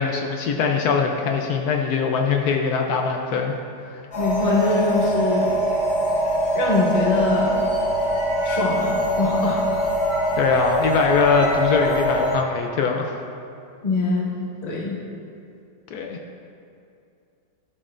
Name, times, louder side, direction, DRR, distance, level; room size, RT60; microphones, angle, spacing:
voice 1, 0.0-3.5 3.9-4.0 10.3-13.2 15.9-16.2, left 5 dB, 75° left, 2 dB, 0.9 m, -22 dB
sound 1, 4.1-12.3, right 1 dB, 50° left, 2.0 m, -23 dB
voice 2, 4.2-5.5 6.5-7.7 8.4-9.6 13.8-14.3 14.6-15.0, left 3 dB, 30° left, -4 dB, 0.8 m, -23 dB
12.0 x 6.1 x 2.5 m, 2.5 s
omnidirectional pair, 2.1 m